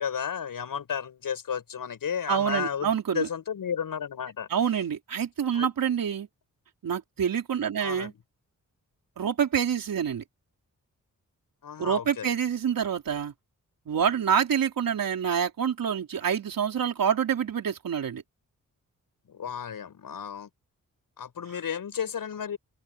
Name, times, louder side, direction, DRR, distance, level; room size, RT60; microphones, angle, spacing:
voice 1, 0.0-4.5 5.5-5.7 7.8-8.1 11.6-12.3 19.3-20.5 21.2-22.6, left 7 dB, 85° left, 7.4 m, -33 dB
voice 2, 2.3-3.3 4.5-6.3 6.8-8.1 9.2-10.2 11.8-13.3 13.9-18.2, right 8 dB, 85° right, 4.0 m, -27 dB
open air
wide cardioid pair, 120°, 33 cm